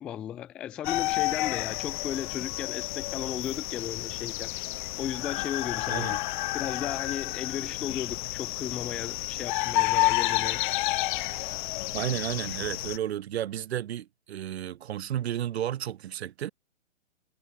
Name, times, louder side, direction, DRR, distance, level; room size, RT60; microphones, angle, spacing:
voice 1, 0.0-4.5 5.0-6.2 6.5-10.6, left 10 dB, 5° left, 0.3 m, -35 dB
sound 1, 0.8-13.0, left 19 dB, 40° left, 2.2 m, -30 dB
voice 2, 5.9-6.2 11.9-16.5, right 11 dB, 55° right, 3.4 m, -32 dB
hypercardioid pair, 130°, 37 cm